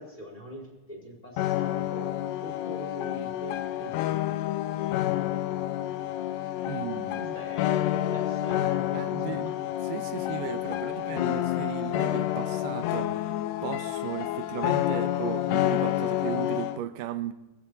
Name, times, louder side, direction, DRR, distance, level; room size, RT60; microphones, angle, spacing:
voice 1, 0.0-2.1 2.4-4.5 7.2-9.4 10.7-11.5, equal, 10° left, -1 dB, 4.7 m, -44 dB
sound 1, 1.4-16.8, left 13 dB, 80° left, 1.6 m, -29 dB
voice 2, 6.7-7.4 8.9-9.5 9.8-13.2 13.6-17.3, right 11 dB, 85° right, 11 dB, 2.3 m, -36 dB
24.0 x 15.5 x 2.8 m, 1.1 s
omnidirectional pair, 3.7 m